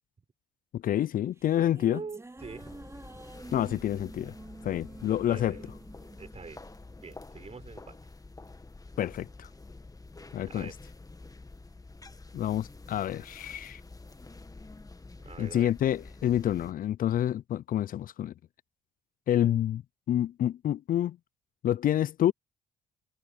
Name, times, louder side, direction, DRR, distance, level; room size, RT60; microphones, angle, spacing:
voice 1, 0.7-2.0 3.5-4.3 4.6-5.6 9.0-9.5 10.3-10.7 12.3-13.8 15.4-18.3 19.3-19.8 20.1-21.2 21.6-22.3, left 11 dB, 55° left, 0.5 m, -28 dB
sound 1, 1.1-7.7, right 2 dB, 15° right, 2.9 m, -49 dB
voice 2, 1.6-2.8 3.3-3.5 5.3-5.7 6.2-6.6 7.0-8.0 10.5-10.8 15.2-15.7, right 5 dB, 40° right, 6.1 m, -44 dB
sound 2, 2.4-16.7, left 3 dB, 20° left, 1.8 m, -48 dB
hypercardioid pair, 50°, 17 cm